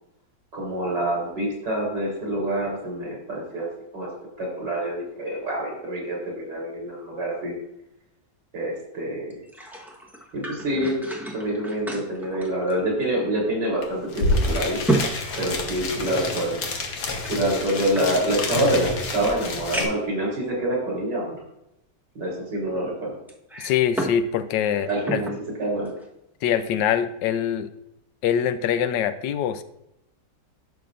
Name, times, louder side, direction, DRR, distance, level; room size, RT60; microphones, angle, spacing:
voice 1, 0.5-3.7 3.9-4.1 4.4-7.5 8.5-9.4 10.3-11.0 11.3-14.8 15.4-16.6 17.3-21.4 22.2-23.2 24.9-25.3 25.6-25.9, right 1 dB, 75° right, -2 dB, 4.1 m, -26 dB
sound 1, 9.3-13.3 13.6-13.7 14.3-16.3 17.2-18.6 19.2-19.3 19.7-20.2 20.9-21.0 23.3-24.2 24.6-25.4 25.9-26.1, right 2 dB, ahead, 0.7 m, -31 dB
sound 2, 13.8-13.9 14.1-19.8, left 2 dB, 65° left, 1.7 m, -28 dB
voice 2, 23.6-25.2 26.4-27.7 28.2-29.6, left 9 dB, 85° left, 12 dB, 1.2 m, -24 dB
11.0 x 6.9 x 2.5 m, 0.85 s
omnidirectional pair, 1.9 m